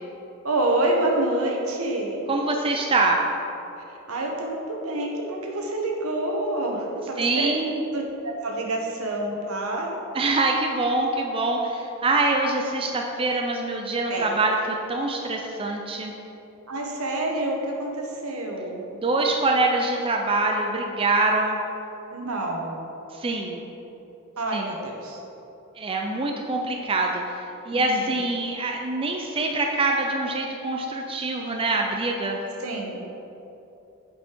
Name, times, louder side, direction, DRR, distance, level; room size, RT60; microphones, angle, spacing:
voice 1, 0.4-2.3 4.1-7.5 7.9-9.9 14.1-14.3 16.7-18.8 22.1-22.8 24.4-25.2 27.7-28.1 32.6-33.0, right 1 dB, 75° right, 0 dB, 1.2 m, -27 dB
voice 2, 2.3-3.2 7.2-7.8 10.1-14.6 14.9-16.1 18.9-21.6 23.1-23.6 24.5-24.7 25.8-32.4, right 2 dB, 25° right, 1 dB, 0.5 m, -24 dB
7.8 x 5.5 x 4.5 m, 3.0 s
head